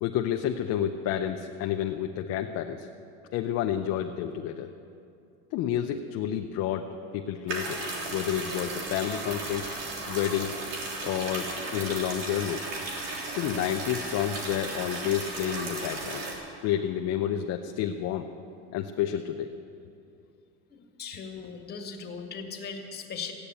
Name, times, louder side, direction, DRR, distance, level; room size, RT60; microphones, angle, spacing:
voice 1, 0.0-2.9 3.3-4.7 5.5-6.9 7.1-7.8 8.1-9.7 10.0-10.6 11.0-12.7 13.3-16.2 16.6-18.3 18.7-19.5, left 10 dB, 50° left, 5 dB, 0.8 m, -30 dB
sound 1, 7.5-16.3, right 2 dB, 75° right, 3.5 m, -35 dB
voice 2, 20.7-23.3, left 5 dB, 30° left, 2 dB, 2.1 m, -39 dB
15.5 x 9.9 x 8.3 m, 2.5 s
supercardioid pair, 125°, 33 cm